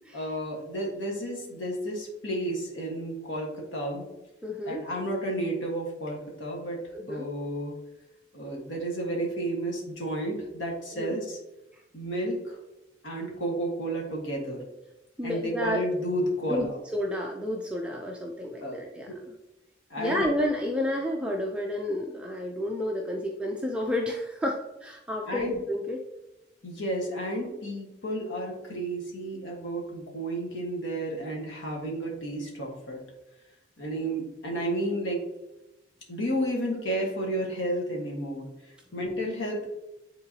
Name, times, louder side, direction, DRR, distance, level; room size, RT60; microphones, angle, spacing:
voice 1, 0.1-4.0 4.6-6.8 7.1-7.8 8.3-11.4 11.9-12.6 13.0-14.6 15.2-16.8 18.6-18.8 19.9-20.2 25.3-25.5 26.6-33.0 33.8-35.2 36.1-39.7, right 1 dB, 75° left, -1 dB, 1.5 m, -32 dB
voice 2, 4.4-4.8 6.9-7.3 11.0-11.2 15.2-15.8 16.5-16.7 16.9-19.1 20.0-26.0, left 1 dB, 5° right, 0 dB, 0.4 m, -30 dB
9.6 x 3.8 x 2.8 m, 0.95 s
head